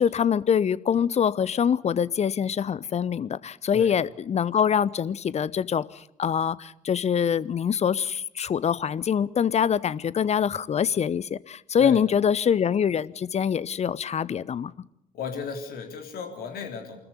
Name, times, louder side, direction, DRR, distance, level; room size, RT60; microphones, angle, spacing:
voice 1, 0.0-5.9 6.2-14.7, left 8 dB, 40° left, 20 dB, 0.8 m, -24 dB
voice 2, 15.1-17.0, left 5 dB, 60° left, 4 dB, 3.4 m, -34 dB
25.0 x 14.0 x 9.8 m, 0.78 s
figure-of-eight pair, 45°, 18 cm